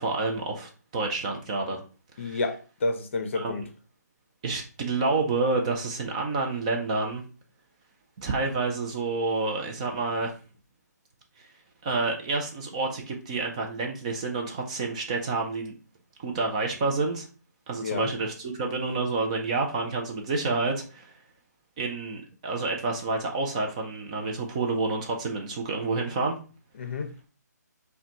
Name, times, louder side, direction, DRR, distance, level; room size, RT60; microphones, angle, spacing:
voice 1, 0.0-1.8 2.2-2.4 3.3-3.6 4.4-7.2 8.2-10.3 11.8-15.7 16.2-17.3 17.7-21.1 21.8-26.4, right 3 dB, 20° right, 0.4 m, -29 dB
voice 2, 2.2-3.6 17.8-18.1 26.8-27.1, left 3 dB, 45° left, 0.6 m, -30 dB
5.5 x 2.2 x 2.8 m
hypercardioid pair, 160°, 10 cm